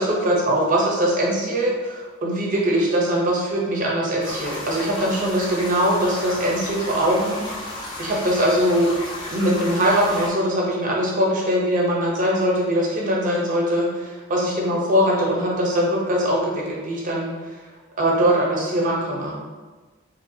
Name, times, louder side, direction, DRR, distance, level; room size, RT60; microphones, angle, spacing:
voice 1, 0.0-7.4 8.0-8.9 9.3-17.3 18.0-19.4, equal, 40° right, -3 dB, 0.6 m, -21 dB
sound 1, 4.2-10.3, left 1 dB, 20° left, 0.5 m, -33 dB
2.8 x 2.2 x 2.6 m, 1.3 s
head